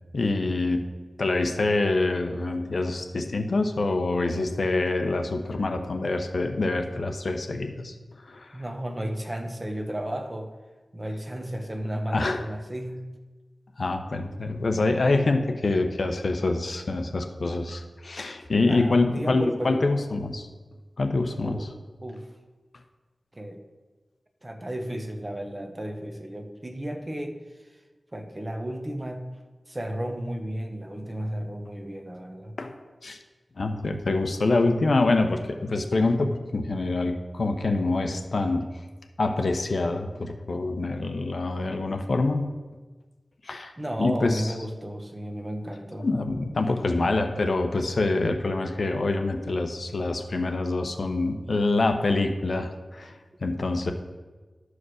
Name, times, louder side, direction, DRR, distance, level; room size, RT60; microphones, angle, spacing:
voice 1, 0.1-0.8 1.2-7.9 8.3-8.5 12.1-12.4 13.8-20.5 21.0-21.6 32.6-32.7 33.0-33.2 33.6-38.7 39.2-42.5 43.4-43.7 44.0-44.4 46.0-53.9, left 2 dB, 65° left, 6 dB, 0.8 m, -25 dB
voice 2, 8.5-10.5 10.9-13.1 18.6-20.1 21.4-21.7 22.0-22.3 23.3-23.6 24.4-27.8 28.1-29.4 29.7-32.6 43.8-46.1, right 1 dB, 25° right, 4 dB, 1.1 m, -33 dB
12.5 x 4.9 x 6.4 m, 1.3 s
wide cardioid pair, 70°, 0 cm